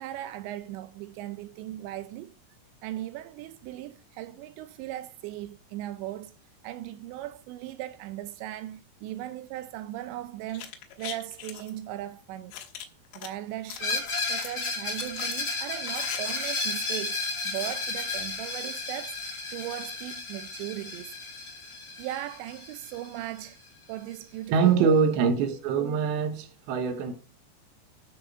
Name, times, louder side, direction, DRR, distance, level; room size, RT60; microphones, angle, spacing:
voice 1, 0.0-2.3 2.8-6.3 6.6-10.7 11.0-12.5 13.1-19.2 19.5-21.1 22.0-23.6 23.9-25.0, right 14 dB, 85° right, 2.5 m, -38 dB
sound 1, 10.5-11.7 12.5-13.3 13.6-14.6 15.0-16.2 16.4-16.5, left 11 dB, 80° left, 3.5 m, -41 dB
Screech, 13.8-23.4, left 3 dB, 25° left, 2.0 m, -33 dB
voice 2, 24.5-27.2, right 6 dB, 70° right, 3.1 m, -24 dB
13.0 x 6.3 x 4.8 m
omnidirectional pair, 5.8 m